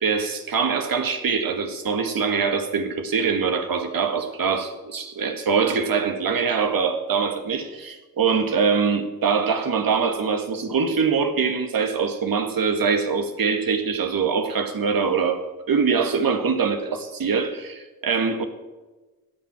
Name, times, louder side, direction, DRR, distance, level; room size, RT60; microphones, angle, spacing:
voice 1, 0.0-15.4 15.7-18.4, right 5 dB, 65° right, 7 dB, 1.8 m, -23 dB
13.5 x 8.9 x 6.1 m, 1.2 s
supercardioid pair, 40°, 38 cm